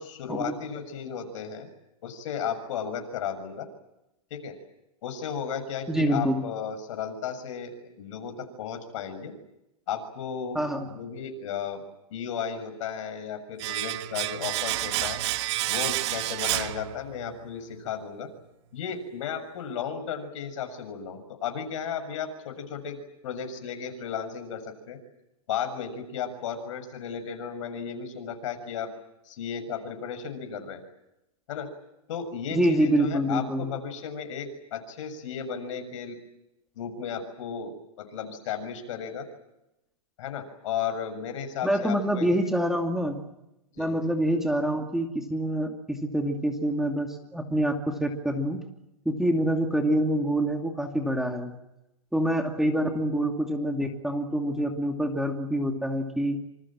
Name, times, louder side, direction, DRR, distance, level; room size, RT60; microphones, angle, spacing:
voice 1, 0.0-1.7 2.0-3.7 4.3-4.6 5.0-9.3 9.9-10.6 10.8-11.8 12.1-15.2 15.7-18.3 18.7-25.0 25.5-28.9 29.3-30.8 31.5-31.7 32.1-36.2 36.8-39.3 40.2-42.3 43.7-43.9, left 7 dB, 60° left, 8 dB, 6.9 m, -34 dB
voice 2, 5.9-6.4 10.5-10.9 32.5-33.7 41.6-43.2 43.8-48.6 49.0-51.5 52.1-56.4, right 1 dB, ahead, 3 dB, 2.6 m, -26 dB
Domestic sounds home sounds, 13.6-17.4 17.7-17.8, right 16 dB, 50° right, 1.7 m, -30 dB
27.0 x 27.0 x 7.6 m, 0.89 s
hypercardioid pair, 135°, 18 cm